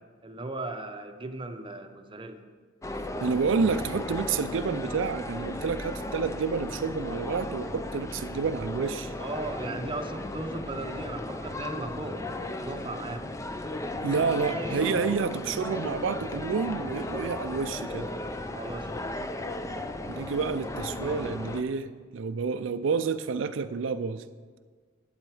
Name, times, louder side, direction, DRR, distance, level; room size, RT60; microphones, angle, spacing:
voice 1, 0.2-2.4 9.2-13.3 14.5-14.8 18.4-19.5, right 2 dB, 25° right, 6 dB, 0.7 m, -37 dB
sound 1, 2.8-21.6, left 1 dB, 15° left, 0.5 m, -35 dB
voice 2, 3.2-9.1 14.0-18.1 20.1-24.2, right 5 dB, 75° right, 11 dB, 0.4 m, -29 dB
10.5 x 9.0 x 4.8 m, 1.5 s
head